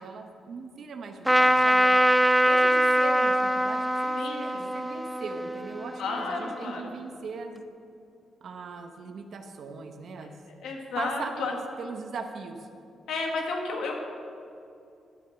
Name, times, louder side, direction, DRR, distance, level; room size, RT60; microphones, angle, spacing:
voice 1, 0.0-2.0 2.5-7.6 8.4-10.3 11.0-12.7, right 4 dB, 65° right, 5 dB, 0.9 m, -39 dB
Trumpet, 1.3-6.8, equal, 5° right, 0.5 m, -23 dB
voice 2, 6.0-6.8 10.6-11.5 13.1-13.9, left 3 dB, 85° left, 2 dB, 1.7 m, -31 dB
11.5 x 6.2 x 6.9 m, 2.6 s
cardioid pair, 105°, 0 cm